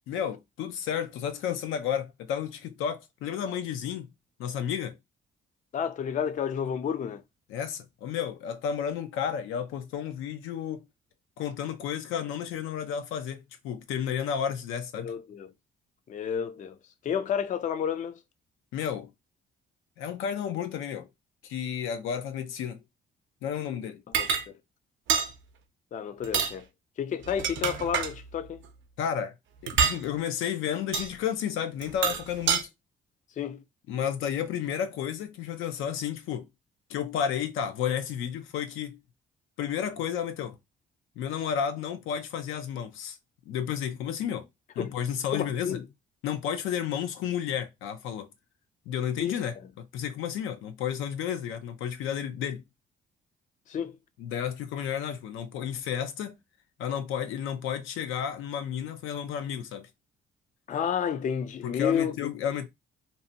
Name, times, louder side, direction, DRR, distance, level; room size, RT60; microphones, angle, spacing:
voice 1, 0.1-4.1 4.4-5.0 7.5-10.9 11.4-15.1 18.7-19.1 20.0-21.1 21.4-22.8 23.4-24.0 29.0-29.3 29.6-32.7 33.9-36.5 36.9-39.0 39.6-40.6 41.2-43.2 43.5-44.5 44.8-45.8 46.2-48.3 48.9-52.6 54.2-56.4 56.8-59.9 61.6-62.7, left 8 dB, 90° left, 0.5 m, -32 dB
voice 2, 5.7-7.2 15.0-15.5 16.1-16.8 17.0-18.2 24.2-24.6 25.9-26.7 27.0-28.6 33.4-33.6 44.8-45.0 45.3-45.8 49.2-49.4 53.7-54.0 60.7-62.3, left 8 dB, 40° left, 0.4 m, -31 dB
sound 1, 24.1-24.5 25.1-25.3 26.2-26.5 27.2-28.1 29.7-30.0 30.9-31.1 31.8-32.6, right 7 dB, 70° right, 0.5 m, -26 dB
2.7 x 2.1 x 2.7 m
cardioid pair, 90°, 20 cm